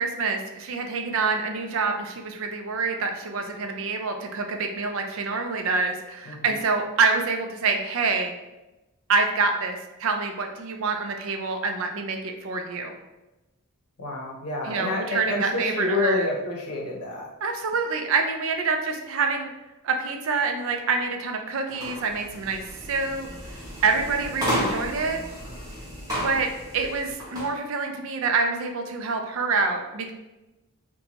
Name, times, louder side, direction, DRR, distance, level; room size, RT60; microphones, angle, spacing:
voice 1, 0.0-8.3 9.1-12.9 14.6-16.3 17.4-19.5 19.8-22.6 22.9-23.3 23.5-25.2 26.2-26.5 26.7-30.1, right 4 dB, 60° right, 4 dB, 0.4 m, -26 dB
voice 2, 14.0-17.3, left 2 dB, 90° left, -1 dB, 0.7 m, -28 dB
sound 1, 21.7-27.5, equal, 15° right, 0.9 m, -33 dB
2.8 x 2.2 x 2.9 m, 1.0 s
head